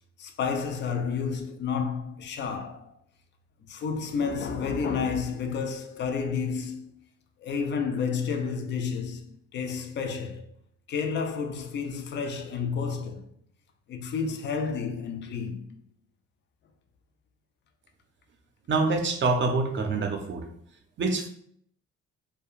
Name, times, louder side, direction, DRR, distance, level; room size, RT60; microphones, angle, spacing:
voice 1, 0.2-3.0 3.6-6.9 7.4-10.5 10.9-13.3 13.9-15.8, left 5 dB, 40° left, 0.4 m, -31 dB
voice 2, 18.7-20.5 21.0-21.3, right 3 dB, 40° right, 0.5 m, -26 dB
2.7 x 2.2 x 2.3 m
cardioid pair, 90°, 30 cm